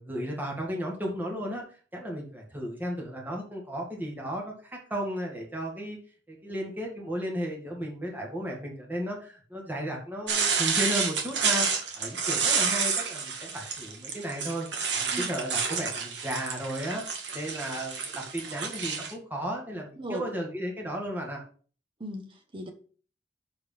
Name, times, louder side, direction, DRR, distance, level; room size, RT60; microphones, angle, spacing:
voice 1, 0.0-6.0 6.3-14.7 14.9-17.0 17.3-21.4, equal, 10° right, 2.0 m, -34 dB
sound 1, 10.3-19.1, right 5 dB, 80° right, 1.6 m, -29 dB
voice 2, 22.0-22.7, equal, 30° right, 1.1 m, -37 dB
6.9 x 4.9 x 5.6 m
head